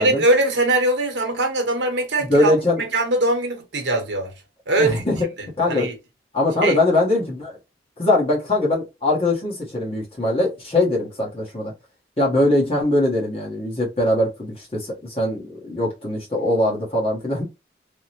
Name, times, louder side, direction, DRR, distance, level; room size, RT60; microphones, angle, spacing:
voice 1, 0.0-2.5 2.8-4.3 4.7-5.0 5.7-5.9 6.6-6.8, right 2 dB, 70° right, 0.9 m, -21 dB
voice 2, 2.2-2.8 4.8-5.3 5.6-5.9 6.3-7.5 8.0-11.7 12.2-17.4, left 1 dB, 30° left, 1.0 m, -21 dB
3.4 x 2.1 x 2.8 m
head